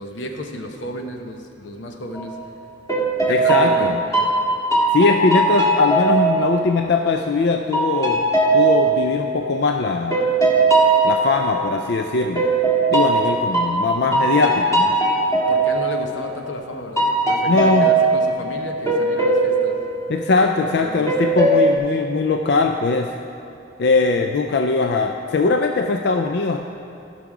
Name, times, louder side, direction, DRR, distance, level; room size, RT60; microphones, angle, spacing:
voice 1, 0.0-2.3 3.3-4.3 15.5-19.8 20.8-21.3, left 1 dB, 90° left, 3 dB, 1.0 m, -33 dB
sound 1, 2.2-2.5 2.9-7.2 7.7-11.9 12.4-16.6 17.0-20.7 21.1-21.8, right 3 dB, 20° left, 1.7 m, -20 dB
voice 2, 3.3-4.0 4.9-8.2 8.5-10.2 11.0-12.5 12.9-14.9 17.5-17.9 20.1-23.1 23.8-26.6, left 3 dB, 60° left, 4 dB, 0.4 m, -20 dB
15.0 x 6.0 x 4.8 m, 2.6 s
head